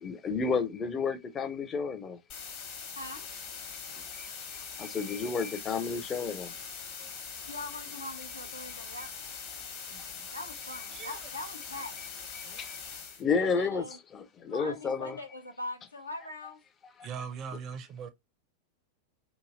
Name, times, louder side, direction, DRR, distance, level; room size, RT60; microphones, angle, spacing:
voice 1, 0.0-2.2 4.2-4.3 4.8-6.5 12.3-12.8 13.2-13.8 14.1-15.2, left 5 dB, 25° left, 0.5 m, -31 dB
sound 1, 2.3-13.2, left 6 dB, 45° left, 0.9 m, -42 dB
voice 2, 4.8-5.4 7.0-7.4 9.9-10.3 10.9-11.2 12.4-12.6 13.2-13.3 17.0-18.1, right 6 dB, 35° right, 0.5 m, -43 dB
voice 3, 7.4-9.1 10.3-12.0 13.4-14.0 14.5-16.6, left 2 dB, 85° left, 0.7 m, -41 dB
2.9 x 2.6 x 2.4 m
figure-of-eight pair, 90°, 0 cm